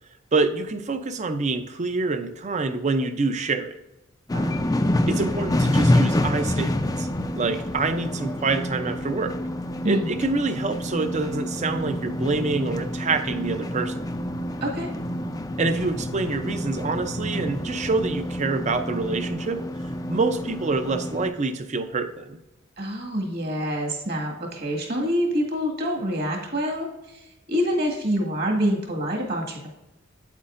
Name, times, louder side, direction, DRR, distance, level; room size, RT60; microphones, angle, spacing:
voice 1, 0.3-3.7 5.1-7.1 7.4-9.4 9.9-14.0 15.6-19.6 20.1-22.4, right 3 dB, 35° right, 9 dB, 0.6 m, -26 dB
sound 1, 4.3-21.3, left 1 dB, 20° left, 0.4 m, -27 dB
voice 2, 4.3-4.7 9.8-10.1 14.6-14.9 22.8-29.7, equal, 50° right, 0 dB, 1.8 m, -26 dB
8.5 x 8.2 x 2.5 m, 0.97 s
head